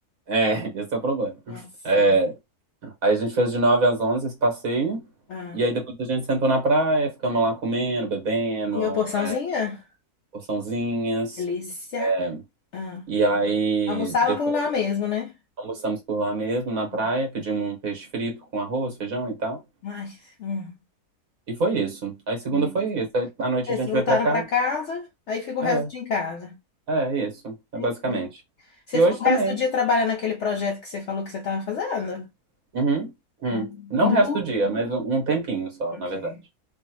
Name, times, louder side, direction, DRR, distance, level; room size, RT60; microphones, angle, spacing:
voice 1, 0.3-2.3 2.8-5.0 5.5-9.3 10.3-11.4 12.0-12.4 13.1-14.1 15.6-19.6 21.5-24.4 25.6-25.9 26.9-28.4 28.9-29.6 32.7-33.1 33.4-36.3, right 2 dB, 60° right, 1.7 m, -24 dB
voice 2, 1.5-2.2 5.3-5.6 8.7-9.8 11.4-12.2 12.7-13.1 13.9-15.3 16.9-17.1 19.8-20.8 22.5-22.7 23.7-26.6 27.7-28.2 28.9-32.3 33.5-34.4 35.9-36.4, left 5 dB, 70° left, 0.7 m, -27 dB
3.3 x 2.3 x 2.9 m
omnidirectional pair, 1.7 m